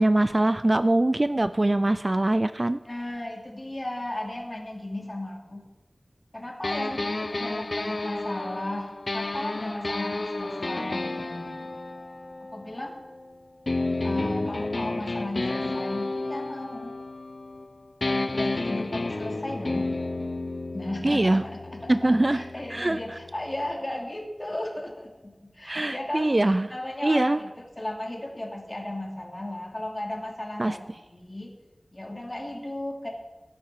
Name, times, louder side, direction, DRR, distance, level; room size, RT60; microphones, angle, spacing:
voice 1, 0.0-2.8 21.0-21.4 21.9-22.4 22.7-23.2 25.6-26.7 27.0-27.4 30.6-30.8, right 1 dB, 35° right, 12 dB, 0.5 m, -23 dB
voice 2, 2.9-5.6 6.3-11.7 12.4-12.9 14.0-16.9 18.0-19.9 20.7-26.3 26.7-31.5 31.9-33.1, left 1 dB, 30° left, 0 dB, 3.0 m, -35 dB
sound 1, 6.6-13.2 13.7-17.7 18.0-23.7, left 2 dB, 55° left, 0.8 m, -31 dB
18.5 x 10.0 x 5.0 m, 1.1 s
wide cardioid pair, 60°, 0 cm